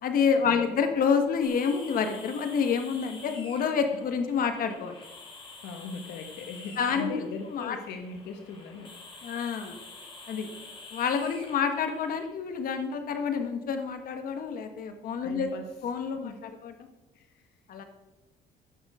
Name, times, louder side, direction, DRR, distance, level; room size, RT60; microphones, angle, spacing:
voice 1, 0.0-4.9 6.8-7.8 9.2-9.8 10.3-10.5 10.9-15.5 15.8-16.3 16.6-16.7 17.7-17.8, left 6 dB, 55° left, 6 dB, 1.6 m, -28 dB
sound 1, 1.4-12.2, left 3 dB, 30° left, 3.3 m, -48 dB
voice 2, 5.6-9.4 15.2-15.6 16.2-16.5 17.1-17.5, left 4 dB, 80° left, 5 dB, 1.4 m, -40 dB
16.0 x 6.5 x 5.0 m, 1.1 s
cardioid pair, 110°, 17 cm